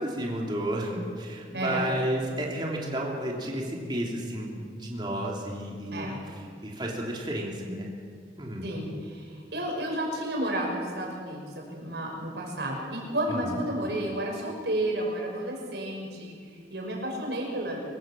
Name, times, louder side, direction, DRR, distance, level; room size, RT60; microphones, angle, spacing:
voice 1, 0.0-6.1 6.6-7.9 8.4-8.7 13.3-13.5, right 1 dB, 25° right, -2 dB, 3.2 m, -32 dB
voice 2, 1.5-1.9 5.9-6.2 8.6-17.8, right 1 dB, 65° right, -1 dB, 6.0 m, -32 dB
25.0 x 16.0 x 7.7 m, 2.1 s
head